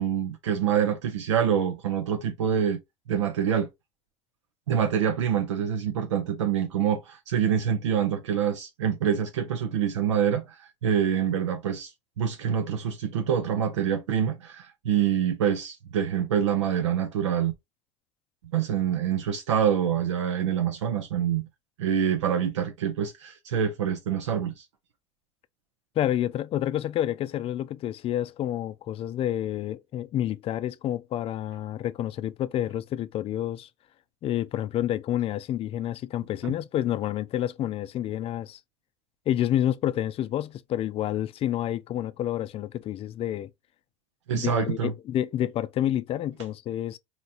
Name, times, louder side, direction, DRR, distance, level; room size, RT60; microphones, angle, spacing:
voice 1, 0.0-2.8 3.1-3.7 4.7-11.9 12.2-17.5 18.5-21.5 21.8-24.7 36.4-36.5 44.3-44.9, right 8 dB, 80° right, 0.6 m, -26 dB
voice 2, 26.0-33.7 34.2-38.6 39.3-43.5 44.3-47.0, left 12 dB, 40° left, 0.4 m, -29 dB
4.0 x 2.8 x 2.3 m
hypercardioid pair, 80°, 15 cm